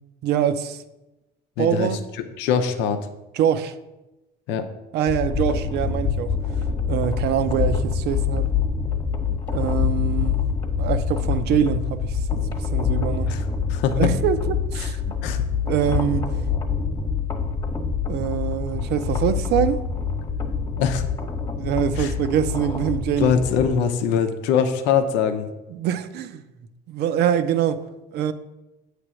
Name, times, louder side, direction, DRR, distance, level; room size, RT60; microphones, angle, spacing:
voice 1, 0.2-0.8 1.6-2.0 3.3-3.7 4.9-6.4 6.9-8.5 9.5-10.5 10.8-13.4 13.9-15.1 15.7-16.3 18.1-19.8 21.6-23.4 25.7-26.4 26.9-27.8 28.1-28.3, right 9 dB, 65° right, 0.6 m, -24 dB
voice 2, 1.6-2.0 2.4-3.0 4.5-4.7 13.3-14.1 14.8-14.9 15.2-15.4 20.8-21.1 21.9-22.1 23.2-25.5, left 7 dB, 85° left, 0.7 m, -22 dB
sound 1, 5.1-23.8, left 6 dB, 25° left, 1.2 m, -25 dB
8.4 x 3.3 x 6.2 m
cardioid pair, 115°, 18 cm